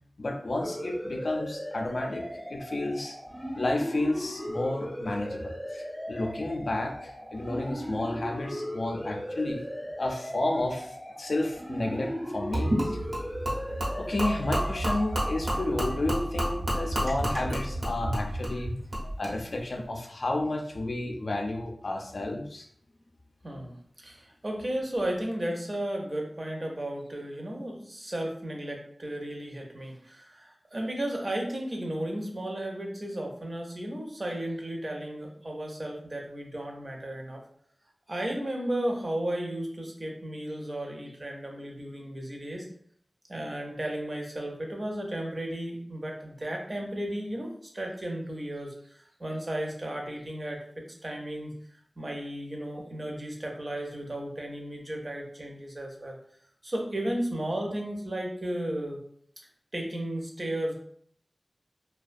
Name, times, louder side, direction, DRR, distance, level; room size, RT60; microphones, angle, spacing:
voice 1, 0.2-3.2 3.5-9.6 10.0-13.0 14.0-18.7 19.0-22.7, left 2 dB, 75° left, 3 dB, 0.3 m, -31 dB
sound 1, 0.6-17.0, equal, 5° left, 0.4 m, -38 dB
Gurgling / Liquid, 12.5-19.3, right 1 dB, 80° right, 0.9 m, -30 dB
voice 2, 23.4-37.4 38.1-42.7 43.3-51.5 52.0-56.2 56.6-59.0 59.7-60.7, right 1 dB, 45° right, 1 dB, 0.6 m, -34 dB
2.4 x 2.1 x 2.5 m, 0.63 s
wide cardioid pair, 55°, 0 cm